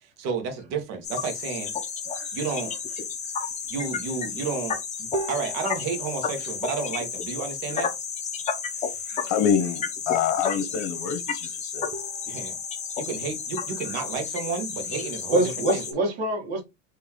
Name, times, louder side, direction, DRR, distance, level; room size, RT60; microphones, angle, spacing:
voice 1, 0.0-1.7 2.3-3.0 3.7-7.9 12.2-12.6 13.0-15.4 15.7-15.8, right 5 dB, 60° right, 1.4 m, -32 dB
sound 1, 1.0-15.9, left 6 dB, 25° left, 0.7 m, -32 dB
sound 2, 1.3-2.2 2.8-2.9 3.1-3.2 3.5-4.1 5.1-8.0 11.9-14.4, right 2 dB, 25° right, 0.9 m, -41 dB
voice 2, 2.1-2.4 3.4-3.5 7.7-7.8 9.1-9.3 11.4-11.5 13.8-14.0 15.3-16.6, right 2 dB, 90° right, 1.7 m, -27 dB
voice 3, 9.2-11.9, left 8 dB, 70° left, 0.9 m, -26 dB
3.9 x 3.0 x 3.0 m
supercardioid pair, 130°, 30 cm